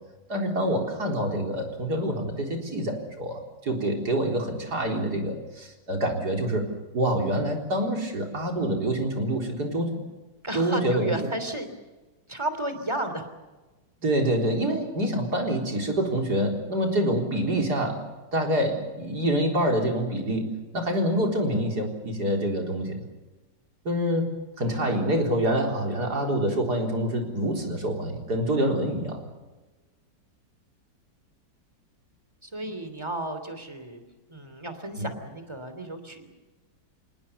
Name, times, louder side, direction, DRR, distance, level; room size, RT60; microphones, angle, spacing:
voice 1, 0.3-6.7 6.9-10.0 10.5-11.1 14.0-18.0 18.3-23.0 23.8-29.3 35.0-35.1, right 1 dB, 55° right, 2 dB, 4.6 m, -26 dB
voice 2, 10.4-11.7 12.3-13.3 32.4-34.0 34.3-36.3, right 1 dB, 15° right, 9 dB, 3.1 m, -33 dB
27.5 x 19.0 x 7.0 m, 1.2 s
omnidirectional pair, 2.1 m